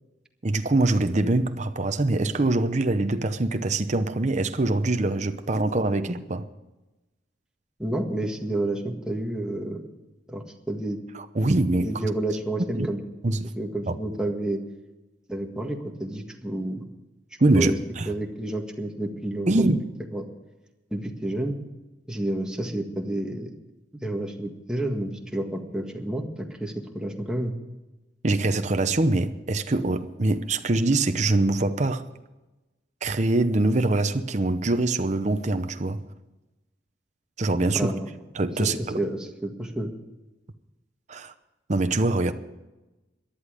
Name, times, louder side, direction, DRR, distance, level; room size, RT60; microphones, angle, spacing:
voice 1, 0.4-6.5 11.1-11.9 12.7-12.9 13.2-13.5 13.9-14.0 17.4-18.1 19.5-19.8 28.2-32.1 33.0-36.0 37.4-37.9 38.3-39.0 41.1-41.3 41.7-42.3, right 2 dB, 40° right, 0.8 m, -24 dB
voice 2, 7.8-9.8 10.3-11.0 11.8-13.0 13.6-14.6 15.3-16.8 17.5-17.8 18.0-19.7 20.1-20.2 20.9-21.6 22.1-23.5 24.0-27.5 37.7-38.1 38.6-39.9, right 1 dB, 5° right, 1.7 m, -30 dB
18.5 x 11.5 x 5.0 m
head